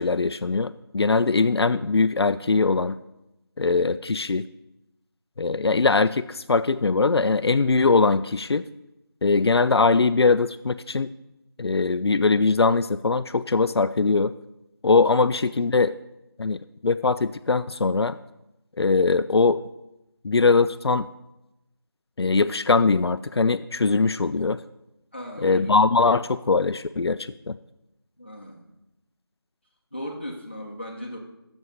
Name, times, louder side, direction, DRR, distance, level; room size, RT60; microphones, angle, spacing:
voice 1, 0.0-3.0 3.6-4.4 5.4-8.6 9.2-11.1 11.6-14.3 14.8-15.9 16.4-18.2 18.8-19.6 20.2-21.1 22.2-24.6 25.4-27.2 27.5-27.6, left 4 dB, 85° left, 12 dB, 0.4 m, -21 dB
voice 2, 25.1-25.8 28.2-28.7 29.9-31.2, equal, 25° left, 0 dB, 0.9 m, -37 dB
8.1 x 7.1 x 5.5 m, 0.91 s
figure-of-eight pair, 180°, 13 cm